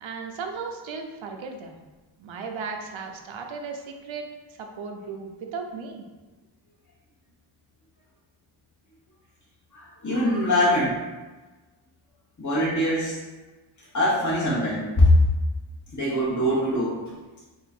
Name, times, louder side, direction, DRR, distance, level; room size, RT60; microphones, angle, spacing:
voice 1, 0.0-1.8 2.2-4.3 4.6-6.0, right 4 dB, 80° right, 3 dB, 0.6 m, -36 dB
voice 2, 9.7-11.0 12.4-13.2 13.9-15.1 15.9-17.0, left 1 dB, 40° left, -8 dB, 0.9 m, -23 dB
2.8 x 2.4 x 4.2 m, 1.2 s
wide cardioid pair, 75°, 46 cm